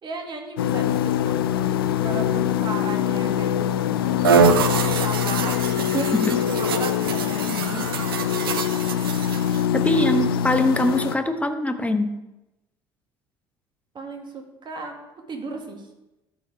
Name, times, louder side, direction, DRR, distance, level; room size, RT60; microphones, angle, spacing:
voice 1, 0.0-1.5 2.0-6.1 6.5-7.9 9.8-10.2 13.9-14.9 15.3-15.9, right 3 dB, 40° right, 3 dB, 2.0 m, -34 dB
sound 1, 0.6-11.2, left 10 dB, 85° left, 0.4 m, -24 dB
sound 2, 4.2-9.7, right 5 dB, 85° right, 0.6 m, -24 dB
voice 2, 9.7-12.1, left 1 dB, 10° left, 7 dB, 1.2 m, -22 dB
12.5 x 4.7 x 4.7 m, 0.96 s
hypercardioid pair, 60°, 12 cm